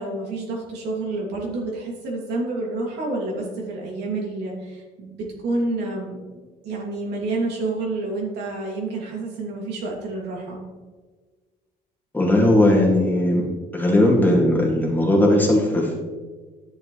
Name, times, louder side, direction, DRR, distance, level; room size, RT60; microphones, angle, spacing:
voice 1, 0.0-10.6, right 2 dB, 75° right, -2 dB, 2.7 m, -29 dB
voice 2, 12.1-13.4 13.7-16.0, left 1 dB, 10° left, -3 dB, 2.3 m, -18 dB
10.5 x 6.9 x 3.3 m, 1.4 s
cardioid pair, 110°, 17 cm